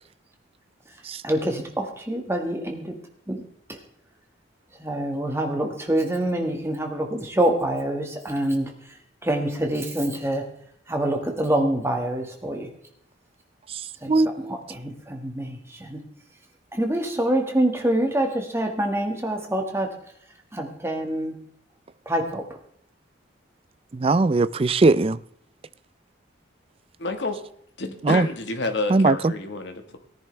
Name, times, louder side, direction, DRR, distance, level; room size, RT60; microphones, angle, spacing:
voice 1, 1.2-2.9 3.3-3.4 3.7-3.8 4.8-9.0 9.2-10.4 10.9-12.7 14.0-16.0 16.7-19.9 20.5-21.3 22.0-22.4, right 1 dB, 15° right, 1.7 m, -26 dB
voice 2, 14.1-14.6 23.9-25.2 28.0-28.3 28.9-29.3, right 3 dB, 30° right, 0.4 m, -20 dB
voice 3, 27.0-27.4 27.8-30.0, left 2 dB, 55° left, 1.5 m, -29 dB
18.0 x 10.5 x 3.3 m
head